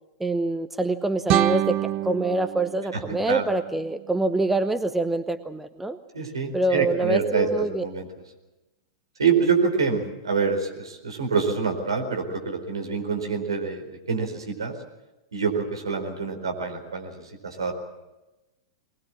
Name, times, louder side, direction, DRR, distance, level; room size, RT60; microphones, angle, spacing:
voice 1, 0.2-6.0 6.5-7.8, right 2 dB, 5° right, 10 dB, 0.9 m, -25 dB
sound 1, 1.3-4.3, right 14 dB, 35° right, 0.8 m, -27 dB
voice 2, 6.1-8.1 9.2-14.7 15.3-17.7, right 5 dB, 75° right, 3 dB, 4.5 m, -26 dB
22.5 x 20.5 x 7.4 m, 1.0 s
figure-of-eight pair, 100°, 3 cm